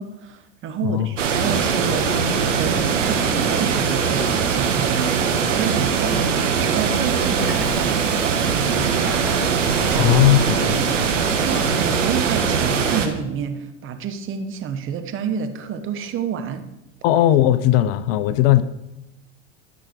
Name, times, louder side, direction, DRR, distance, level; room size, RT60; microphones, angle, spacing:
voice 1, 0.0-2.2 2.5-5.1 5.4-8.0 8.4-9.1 9.9-10.1 10.7-16.7, right 7 dB, 35° right, 1.1 m, -29 dB
sound 1, 1.2-13.1, right 6 dB, 80° right, 1.3 m, -21 dB
Train / Sliding door, 7.3-12.3, right 1 dB, 5° right, 2.3 m, -34 dB
voice 2, 9.9-10.8 17.0-18.6, left 13 dB, 50° left, 0.6 m, -17 dB
12.5 x 6.1 x 4.7 m
hypercardioid pair, 90°, 37 cm